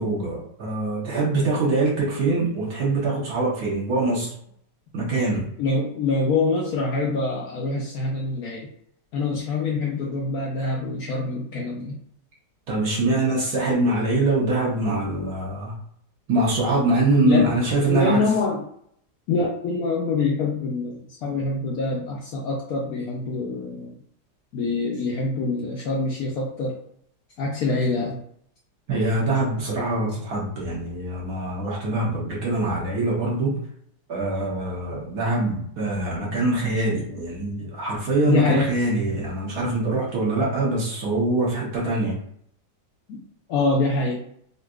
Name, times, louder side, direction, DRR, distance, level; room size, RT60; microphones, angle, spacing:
voice 1, 0.0-4.3 4.9-5.5 12.7-15.7 16.3-18.2 28.9-33.6 34.1-42.2, right 2 dB, 65° right, -4 dB, 1.5 m, -23 dB
voice 2, 5.6-8.7 9.1-12.0 17.2-17.5 17.9-18.6 19.3-24.0 24.5-26.8 27.4-28.2 38.3-38.7 43.1-43.2 43.5-44.2, left 3 dB, 70° left, -2 dB, 0.9 m, -25 dB
3.9 x 2.5 x 2.3 m, 0.68 s
omnidirectional pair, 2.0 m